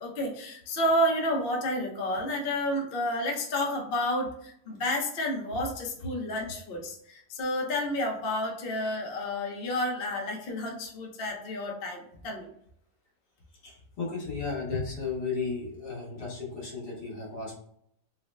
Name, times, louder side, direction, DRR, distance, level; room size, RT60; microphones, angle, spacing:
voice 1, 0.0-12.5, left 1 dB, 55° left, -1 dB, 0.6 m, -30 dB
voice 2, 13.6-17.6, left 4 dB, 70° left, -4 dB, 1.8 m, -34 dB
3.9 x 2.1 x 3.2 m, 0.69 s
omnidirectional pair, 1.9 m